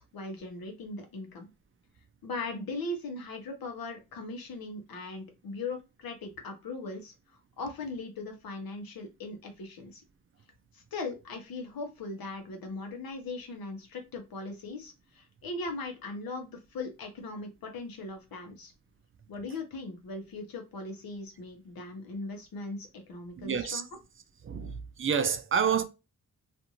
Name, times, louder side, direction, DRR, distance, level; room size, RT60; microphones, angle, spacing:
voice 1, 0.0-1.5 2.2-7.1 7.6-10.0 10.7-18.7 19.3-23.8, left 3 dB, 80° left, 0.9 m, -39 dB
voice 2, 23.4-23.8 24.4-25.8, right 7 dB, 40° right, 0.4 m, -28 dB
2.5 x 2.5 x 2.8 m
cardioid pair, 85°, 34 cm